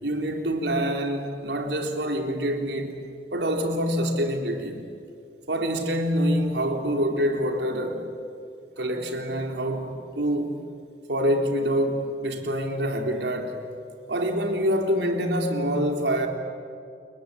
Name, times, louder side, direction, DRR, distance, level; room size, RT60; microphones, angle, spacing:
voice 1, 0.0-3.0 3.3-4.8 5.5-8.0 8.8-10.6 11.1-13.6 14.1-16.3, equal, 80° right, 3.8 m, -26 dB
29.5 x 22.0 x 8.9 m
head